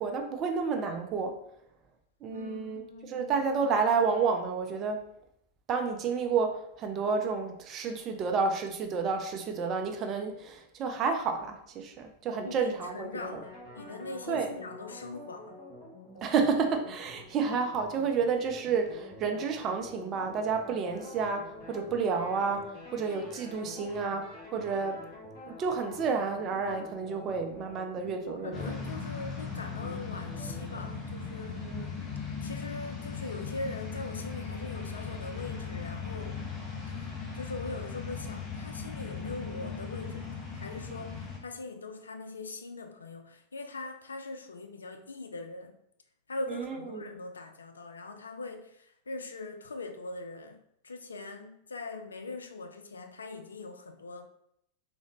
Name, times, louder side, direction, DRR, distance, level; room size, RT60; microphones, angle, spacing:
voice 1, 0.0-1.4 2.2-5.0 5.7-13.4 14.3-14.5 16.2-22.7 22.9-25.0 25.5-28.6 31.6-31.9 46.5-47.1, right 5 dB, 30° right, 4 dB, 0.4 m, -30 dB
voice 2, 2.3-3.3 12.4-15.6 28.3-31.7 32.4-36.4 36.9-45.8 46.3-54.3, left 3 dB, 75° left, 6 dB, 0.3 m, -41 dB
sound 1, 13.2-30.9, left 1 dB, 50° left, 1.5 m, -48 dB
sound 2, 28.5-41.4, left 5 dB, 25° left, 0.7 m, -38 dB
3.6 x 2.1 x 3.0 m, 0.74 s
figure-of-eight pair, 90°, 0 cm